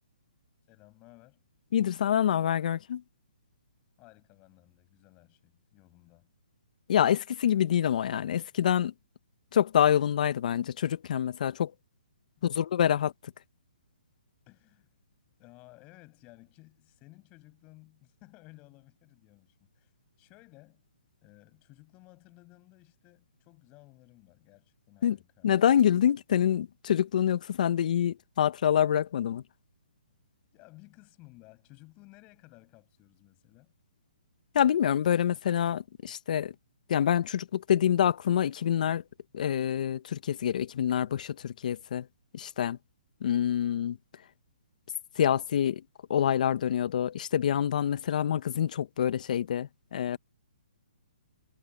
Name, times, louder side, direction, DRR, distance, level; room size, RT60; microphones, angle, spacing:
voice 1, 0.7-1.4 4.0-6.3 12.4-12.7 14.5-14.9 15.4-19.9 20.2-20.9 21.2-25.5 30.5-33.7, left 23 dB, 25° left, 7.3 m, -56 dB
voice 2, 1.7-3.0 6.9-8.9 9.5-11.7 12.4-13.1 25.0-25.2 25.4-29.4 34.5-36.5 36.9-39.0 39.3-42.1 42.3-42.8 43.2-44.0 45.2-45.8 46.1-50.2, left 9 dB, 55° left, 1.2 m, -26 dB
hypercardioid pair, 145°, 5 cm